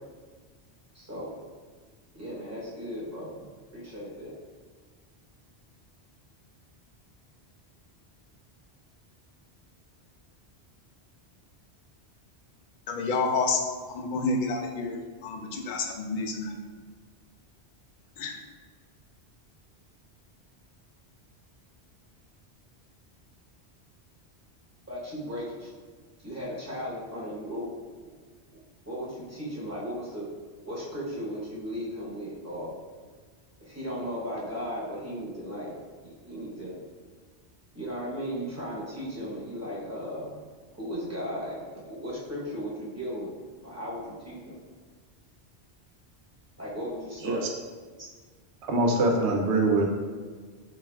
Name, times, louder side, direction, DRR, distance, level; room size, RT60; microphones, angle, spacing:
voice 1, 0.9-1.3 2.1-3.3 3.7-4.3 24.9-25.7 26.2-27.6 28.0-28.1 28.9-30.3 30.6-32.7 33.6-35.7 36.2-36.7 37.7-40.3 40.7-41.6 41.8-43.3 43.6-44.6 46.6-47.4, equal, 15° right, -7 dB, 0.9 m, -36 dB
voice 2, 12.9-13.6 13.9-16.5 18.2-18.3, left 3 dB, 60° left, 3 dB, 0.6 m, -29 dB
voice 3, 48.7-49.8, right 2 dB, 85° right, 1 dB, 0.9 m, -23 dB
4.3 x 3.3 x 2.2 m, 1.5 s
omnidirectional pair, 1.1 m